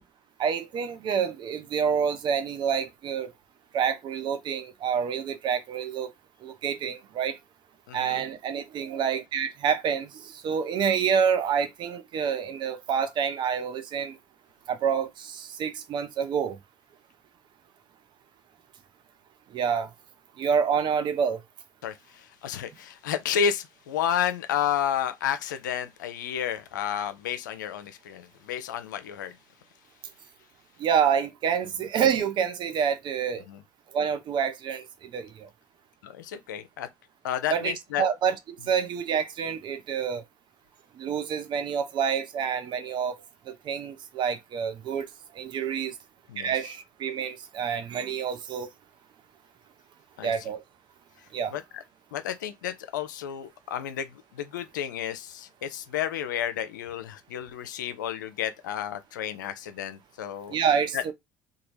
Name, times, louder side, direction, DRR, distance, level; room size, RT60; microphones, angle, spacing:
voice 1, 0.4-3.3 3.7-6.1 6.4-7.4 7.9-14.2 14.7-16.6 19.5-19.9 20.4-21.4 30.8-33.4 33.9-35.5 37.5-38.3 38.7-40.2 40.9-43.1 43.5-45.1 45.3-46.0 46.4-48.7 50.2-50.6 51.3-51.5 60.5-61.1, right 7 dB, 50° right, 0.7 m, -27 dB
voice 2, 7.9-8.2 21.8-29.3 33.5-33.6 36.0-36.9 37.2-38.0 46.3-46.5 50.2-50.3 51.5-51.8 52.1-60.6 60.9-61.0, left 9 dB, 85° left, 0.5 m, -31 dB
2.8 x 2.2 x 3.1 m
hypercardioid pair, 65°, 10 cm